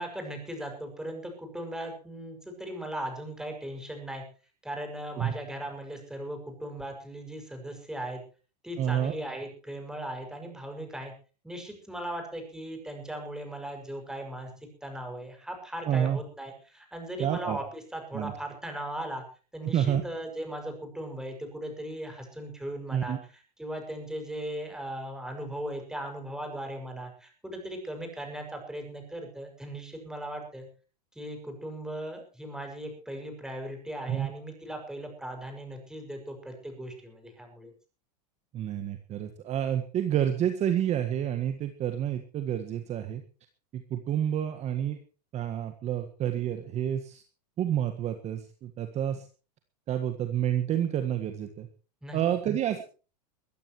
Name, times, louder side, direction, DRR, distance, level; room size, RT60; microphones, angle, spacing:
voice 1, 0.0-4.2 4.6-8.2 8.6-11.1 11.4-14.5 14.8-19.2 19.5-23.2 23.6-30.7 31.1-37.7 52.0-52.2, right 1 dB, 5° right, 3 dB, 6.2 m, -38 dB
voice 2, 8.8-9.1 15.9-16.2 17.2-17.6 18.1-18.3 19.6-20.0 22.9-23.2 34.1-34.3 38.5-43.2 43.7-45.0 45.3-47.2 47.6-49.2 49.9-51.7 52.1-52.8, right 10 dB, 30° right, 8 dB, 1.6 m, -29 dB
22.0 x 15.0 x 3.1 m, 0.36 s
supercardioid pair, 125°, 21 cm